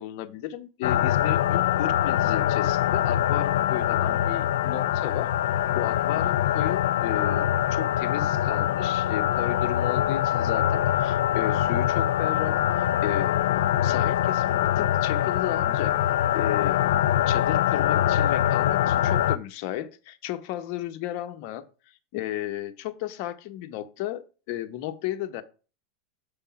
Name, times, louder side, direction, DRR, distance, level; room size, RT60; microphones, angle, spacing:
voice 1, 0.0-5.3 5.7-13.3 13.8-15.9 16.3-16.8 17.3-25.4, left 13 dB, 55° left, 0.9 m, -34 dB
sound 1, 0.8-19.4, left 11 dB, 90° left, 0.3 m, -24 dB
7.0 x 3.6 x 5.7 m
supercardioid pair, 140°, 0 cm